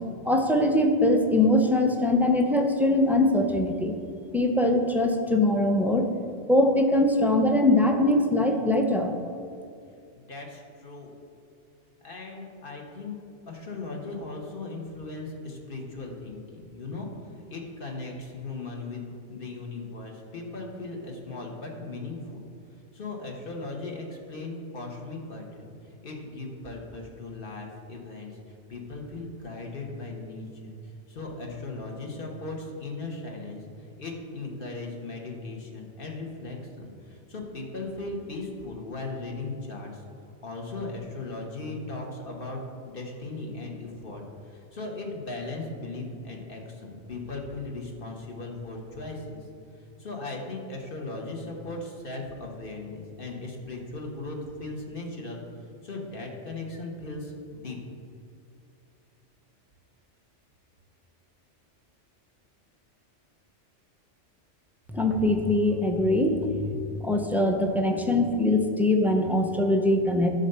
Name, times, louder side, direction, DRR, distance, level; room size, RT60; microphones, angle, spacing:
voice 1, 0.2-4.0 4.3-6.1 6.5-9.1 64.9-70.3, left 1 dB, 5° right, 3 dB, 0.4 m, -22 dB
voice 2, 10.1-11.1 12.0-13.2 13.5-17.1 17.3-22.5 22.9-28.4 28.7-30.7 31.1-40.0 40.4-49.4 50.0-55.4 55.8-57.8, left 2 dB, 50° left, 0 dB, 1.4 m, -38 dB
11.5 x 4.0 x 6.7 m, 2.3 s
omnidirectional pair, 1.2 m